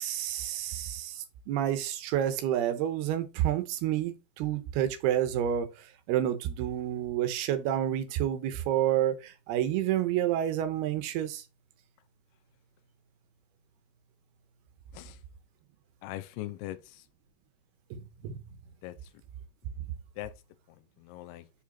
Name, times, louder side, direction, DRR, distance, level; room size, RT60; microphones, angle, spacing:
voice 1, 0.0-5.7 6.1-11.4 17.9-18.4, right 11 dB, 85° right, 2.9 m, -29 dB
voice 2, 16.0-17.0 18.8-19.0 20.2-20.3 21.0-21.4, left 15 dB, 90° left, 2.6 m, -40 dB
6.1 x 5.0 x 4.2 m
omnidirectional pair, 4.5 m